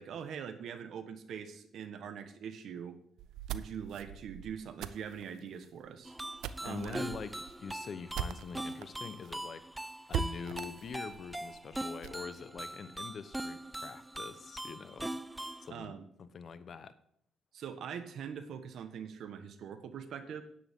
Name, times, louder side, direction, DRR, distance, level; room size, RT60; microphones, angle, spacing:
voice 1, 0.0-3.0 3.5-6.2 6.6-7.1 15.7-16.1 17.5-20.4, right 7 dB, 70° right, 9 dB, 1.3 m, -43 dB
sound 1, 3.2-8.9 9.2-9.3 9.6-9.7 10.1-12.2, right 8 dB, 90° right, 0.5 m, -41 dB
sound 2, 6.0-15.7, right 1 dB, 10° right, 0.4 m, -41 dB
voice 2, 6.6-15.2 15.6-17.0, left 6 dB, 50° left, 13 dB, 0.9 m, -45 dB
9.8 x 9.6 x 3.7 m, 0.69 s
cardioid pair, 90°, 0 cm